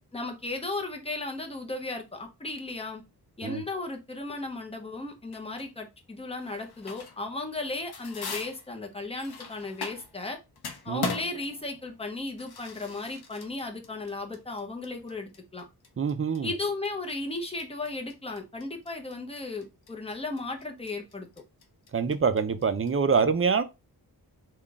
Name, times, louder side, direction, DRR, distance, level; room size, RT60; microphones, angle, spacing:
voice 1, 0.1-3.0 3.4-10.4 10.8-15.6 16.4-21.3, left 2 dB, 15° left, 0.9 m, -35 dB
sound 1, 5.3-5.7 6.4-7.3 7.6-10.3 10.6-22.9, left 4 dB, 70° left, 0.6 m, -40 dB
voice 2, 16.0-16.5 21.9-23.6, right 5 dB, 35° right, 0.4 m, -25 dB
3.8 x 2.4 x 3.4 m
wide cardioid pair, 75°, 40 cm